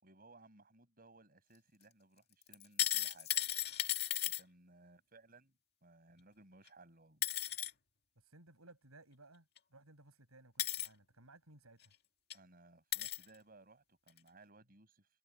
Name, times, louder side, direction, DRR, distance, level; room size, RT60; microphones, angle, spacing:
voice 1, 0.0-3.3 4.4-5.5 5.8-7.2 12.3-15.1, right 2 dB, 40° right, 7.0 m, -62 dB
sound 1, 2.5-4.4 6.7-6.8 7.2-7.7 9.6-9.7 10.6-10.9 11.8-11.9 12.3-12.4 12.9-13.2 14.1-14.2, left 12 dB, 50° left, 2.1 m, -35 dB
voice 2, 8.2-11.9, right 2 dB, 85° right, 7.9 m, -61 dB
head